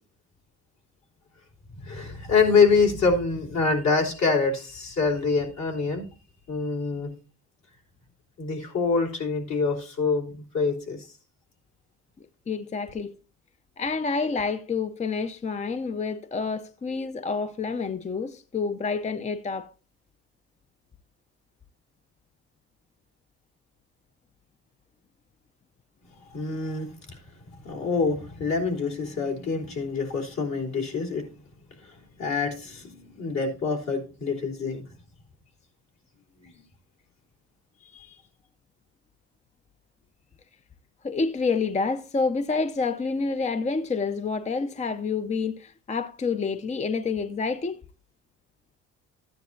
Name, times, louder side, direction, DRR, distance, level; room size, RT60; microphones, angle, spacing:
voice 1, 1.7-6.1 6.5-7.1 8.4-11.1 26.3-27.2 27.6-31.3 31.8-31.9 32.2-34.8 36.4-36.5 37.9-38.1, left 4 dB, 65° left, 3.4 m, -25 dB
voice 2, 12.5-13.2 13.8-19.7 41.0-47.8, left 4 dB, 25° left, 0.5 m, -28 dB
13.5 x 9.5 x 2.6 m
cardioid pair, 90°, 30 cm